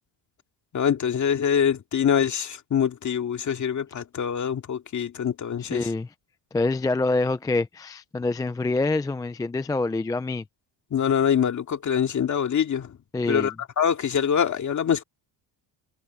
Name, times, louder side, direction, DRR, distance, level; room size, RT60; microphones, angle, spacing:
voice 1, 0.7-5.8 10.9-12.9 13.2-15.0, left 8 dB, 40° left, 2.4 m, -24 dB
voice 2, 5.6-6.1 6.5-10.4 13.1-13.6, left 3 dB, 10° left, 0.3 m, -26 dB
cardioid pair, 140°, 47 cm